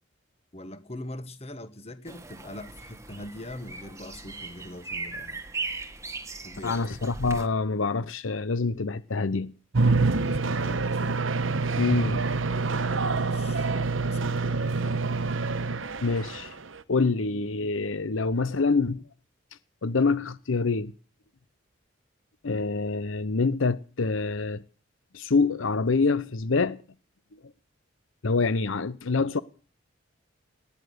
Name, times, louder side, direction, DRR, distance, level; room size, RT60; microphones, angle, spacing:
voice 1, 0.5-5.4 6.4-6.8 10.2-11.2 13.1-14.7 28.7-28.8, left 1 dB, 30° left, 1.5 m, -42 dB
sound 1, 2.1-7.5, right 3 dB, 15° right, 1.5 m, -38 dB
voice 2, 6.6-9.5 11.8-12.2 16.0-16.6 16.9-19.0 19.8-20.9 22.4-24.6 25.1-26.8 27.3-27.5 28.2-29.4, left 4 dB, 80° left, 0.8 m, -26 dB
sound 2, 9.7-16.8, right 3 dB, 75° right, 1.1 m, -26 dB
19.0 x 11.5 x 6.6 m
head